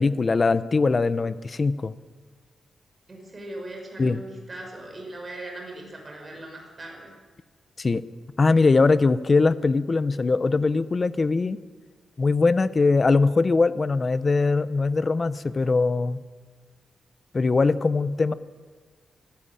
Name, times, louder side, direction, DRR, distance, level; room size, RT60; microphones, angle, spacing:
voice 1, 0.0-1.9 4.0-4.2 7.8-8.0 8.4-11.6 12.2-16.2 17.3-18.3, left 3 dB, 30° left, 15 dB, 0.7 m, -21 dB
voice 2, 3.1-7.2, right 1 dB, 25° right, 1 dB, 5.7 m, -39 dB
22.5 x 14.5 x 10.0 m, 1.5 s
wide cardioid pair, 145°, 0 cm